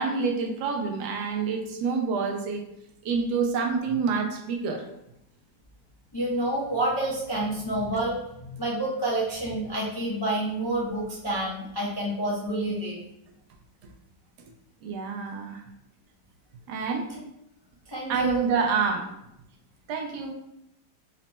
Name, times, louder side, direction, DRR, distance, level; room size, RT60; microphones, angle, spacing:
voice 1, 0.0-2.6 3.0-4.9 14.8-15.6 16.7-17.1 18.1-19.1 19.9-20.3, right 5 dB, 75° right, 2 dB, 1.1 m, -27 dB
voice 2, 6.1-8.2 8.5-13.0 17.1-17.2 17.9-18.4, right 1 dB, 35° left, -7 dB, 0.4 m, -28 dB
4.1 x 2.1 x 4.1 m, 0.81 s
omnidirectional pair, 1.9 m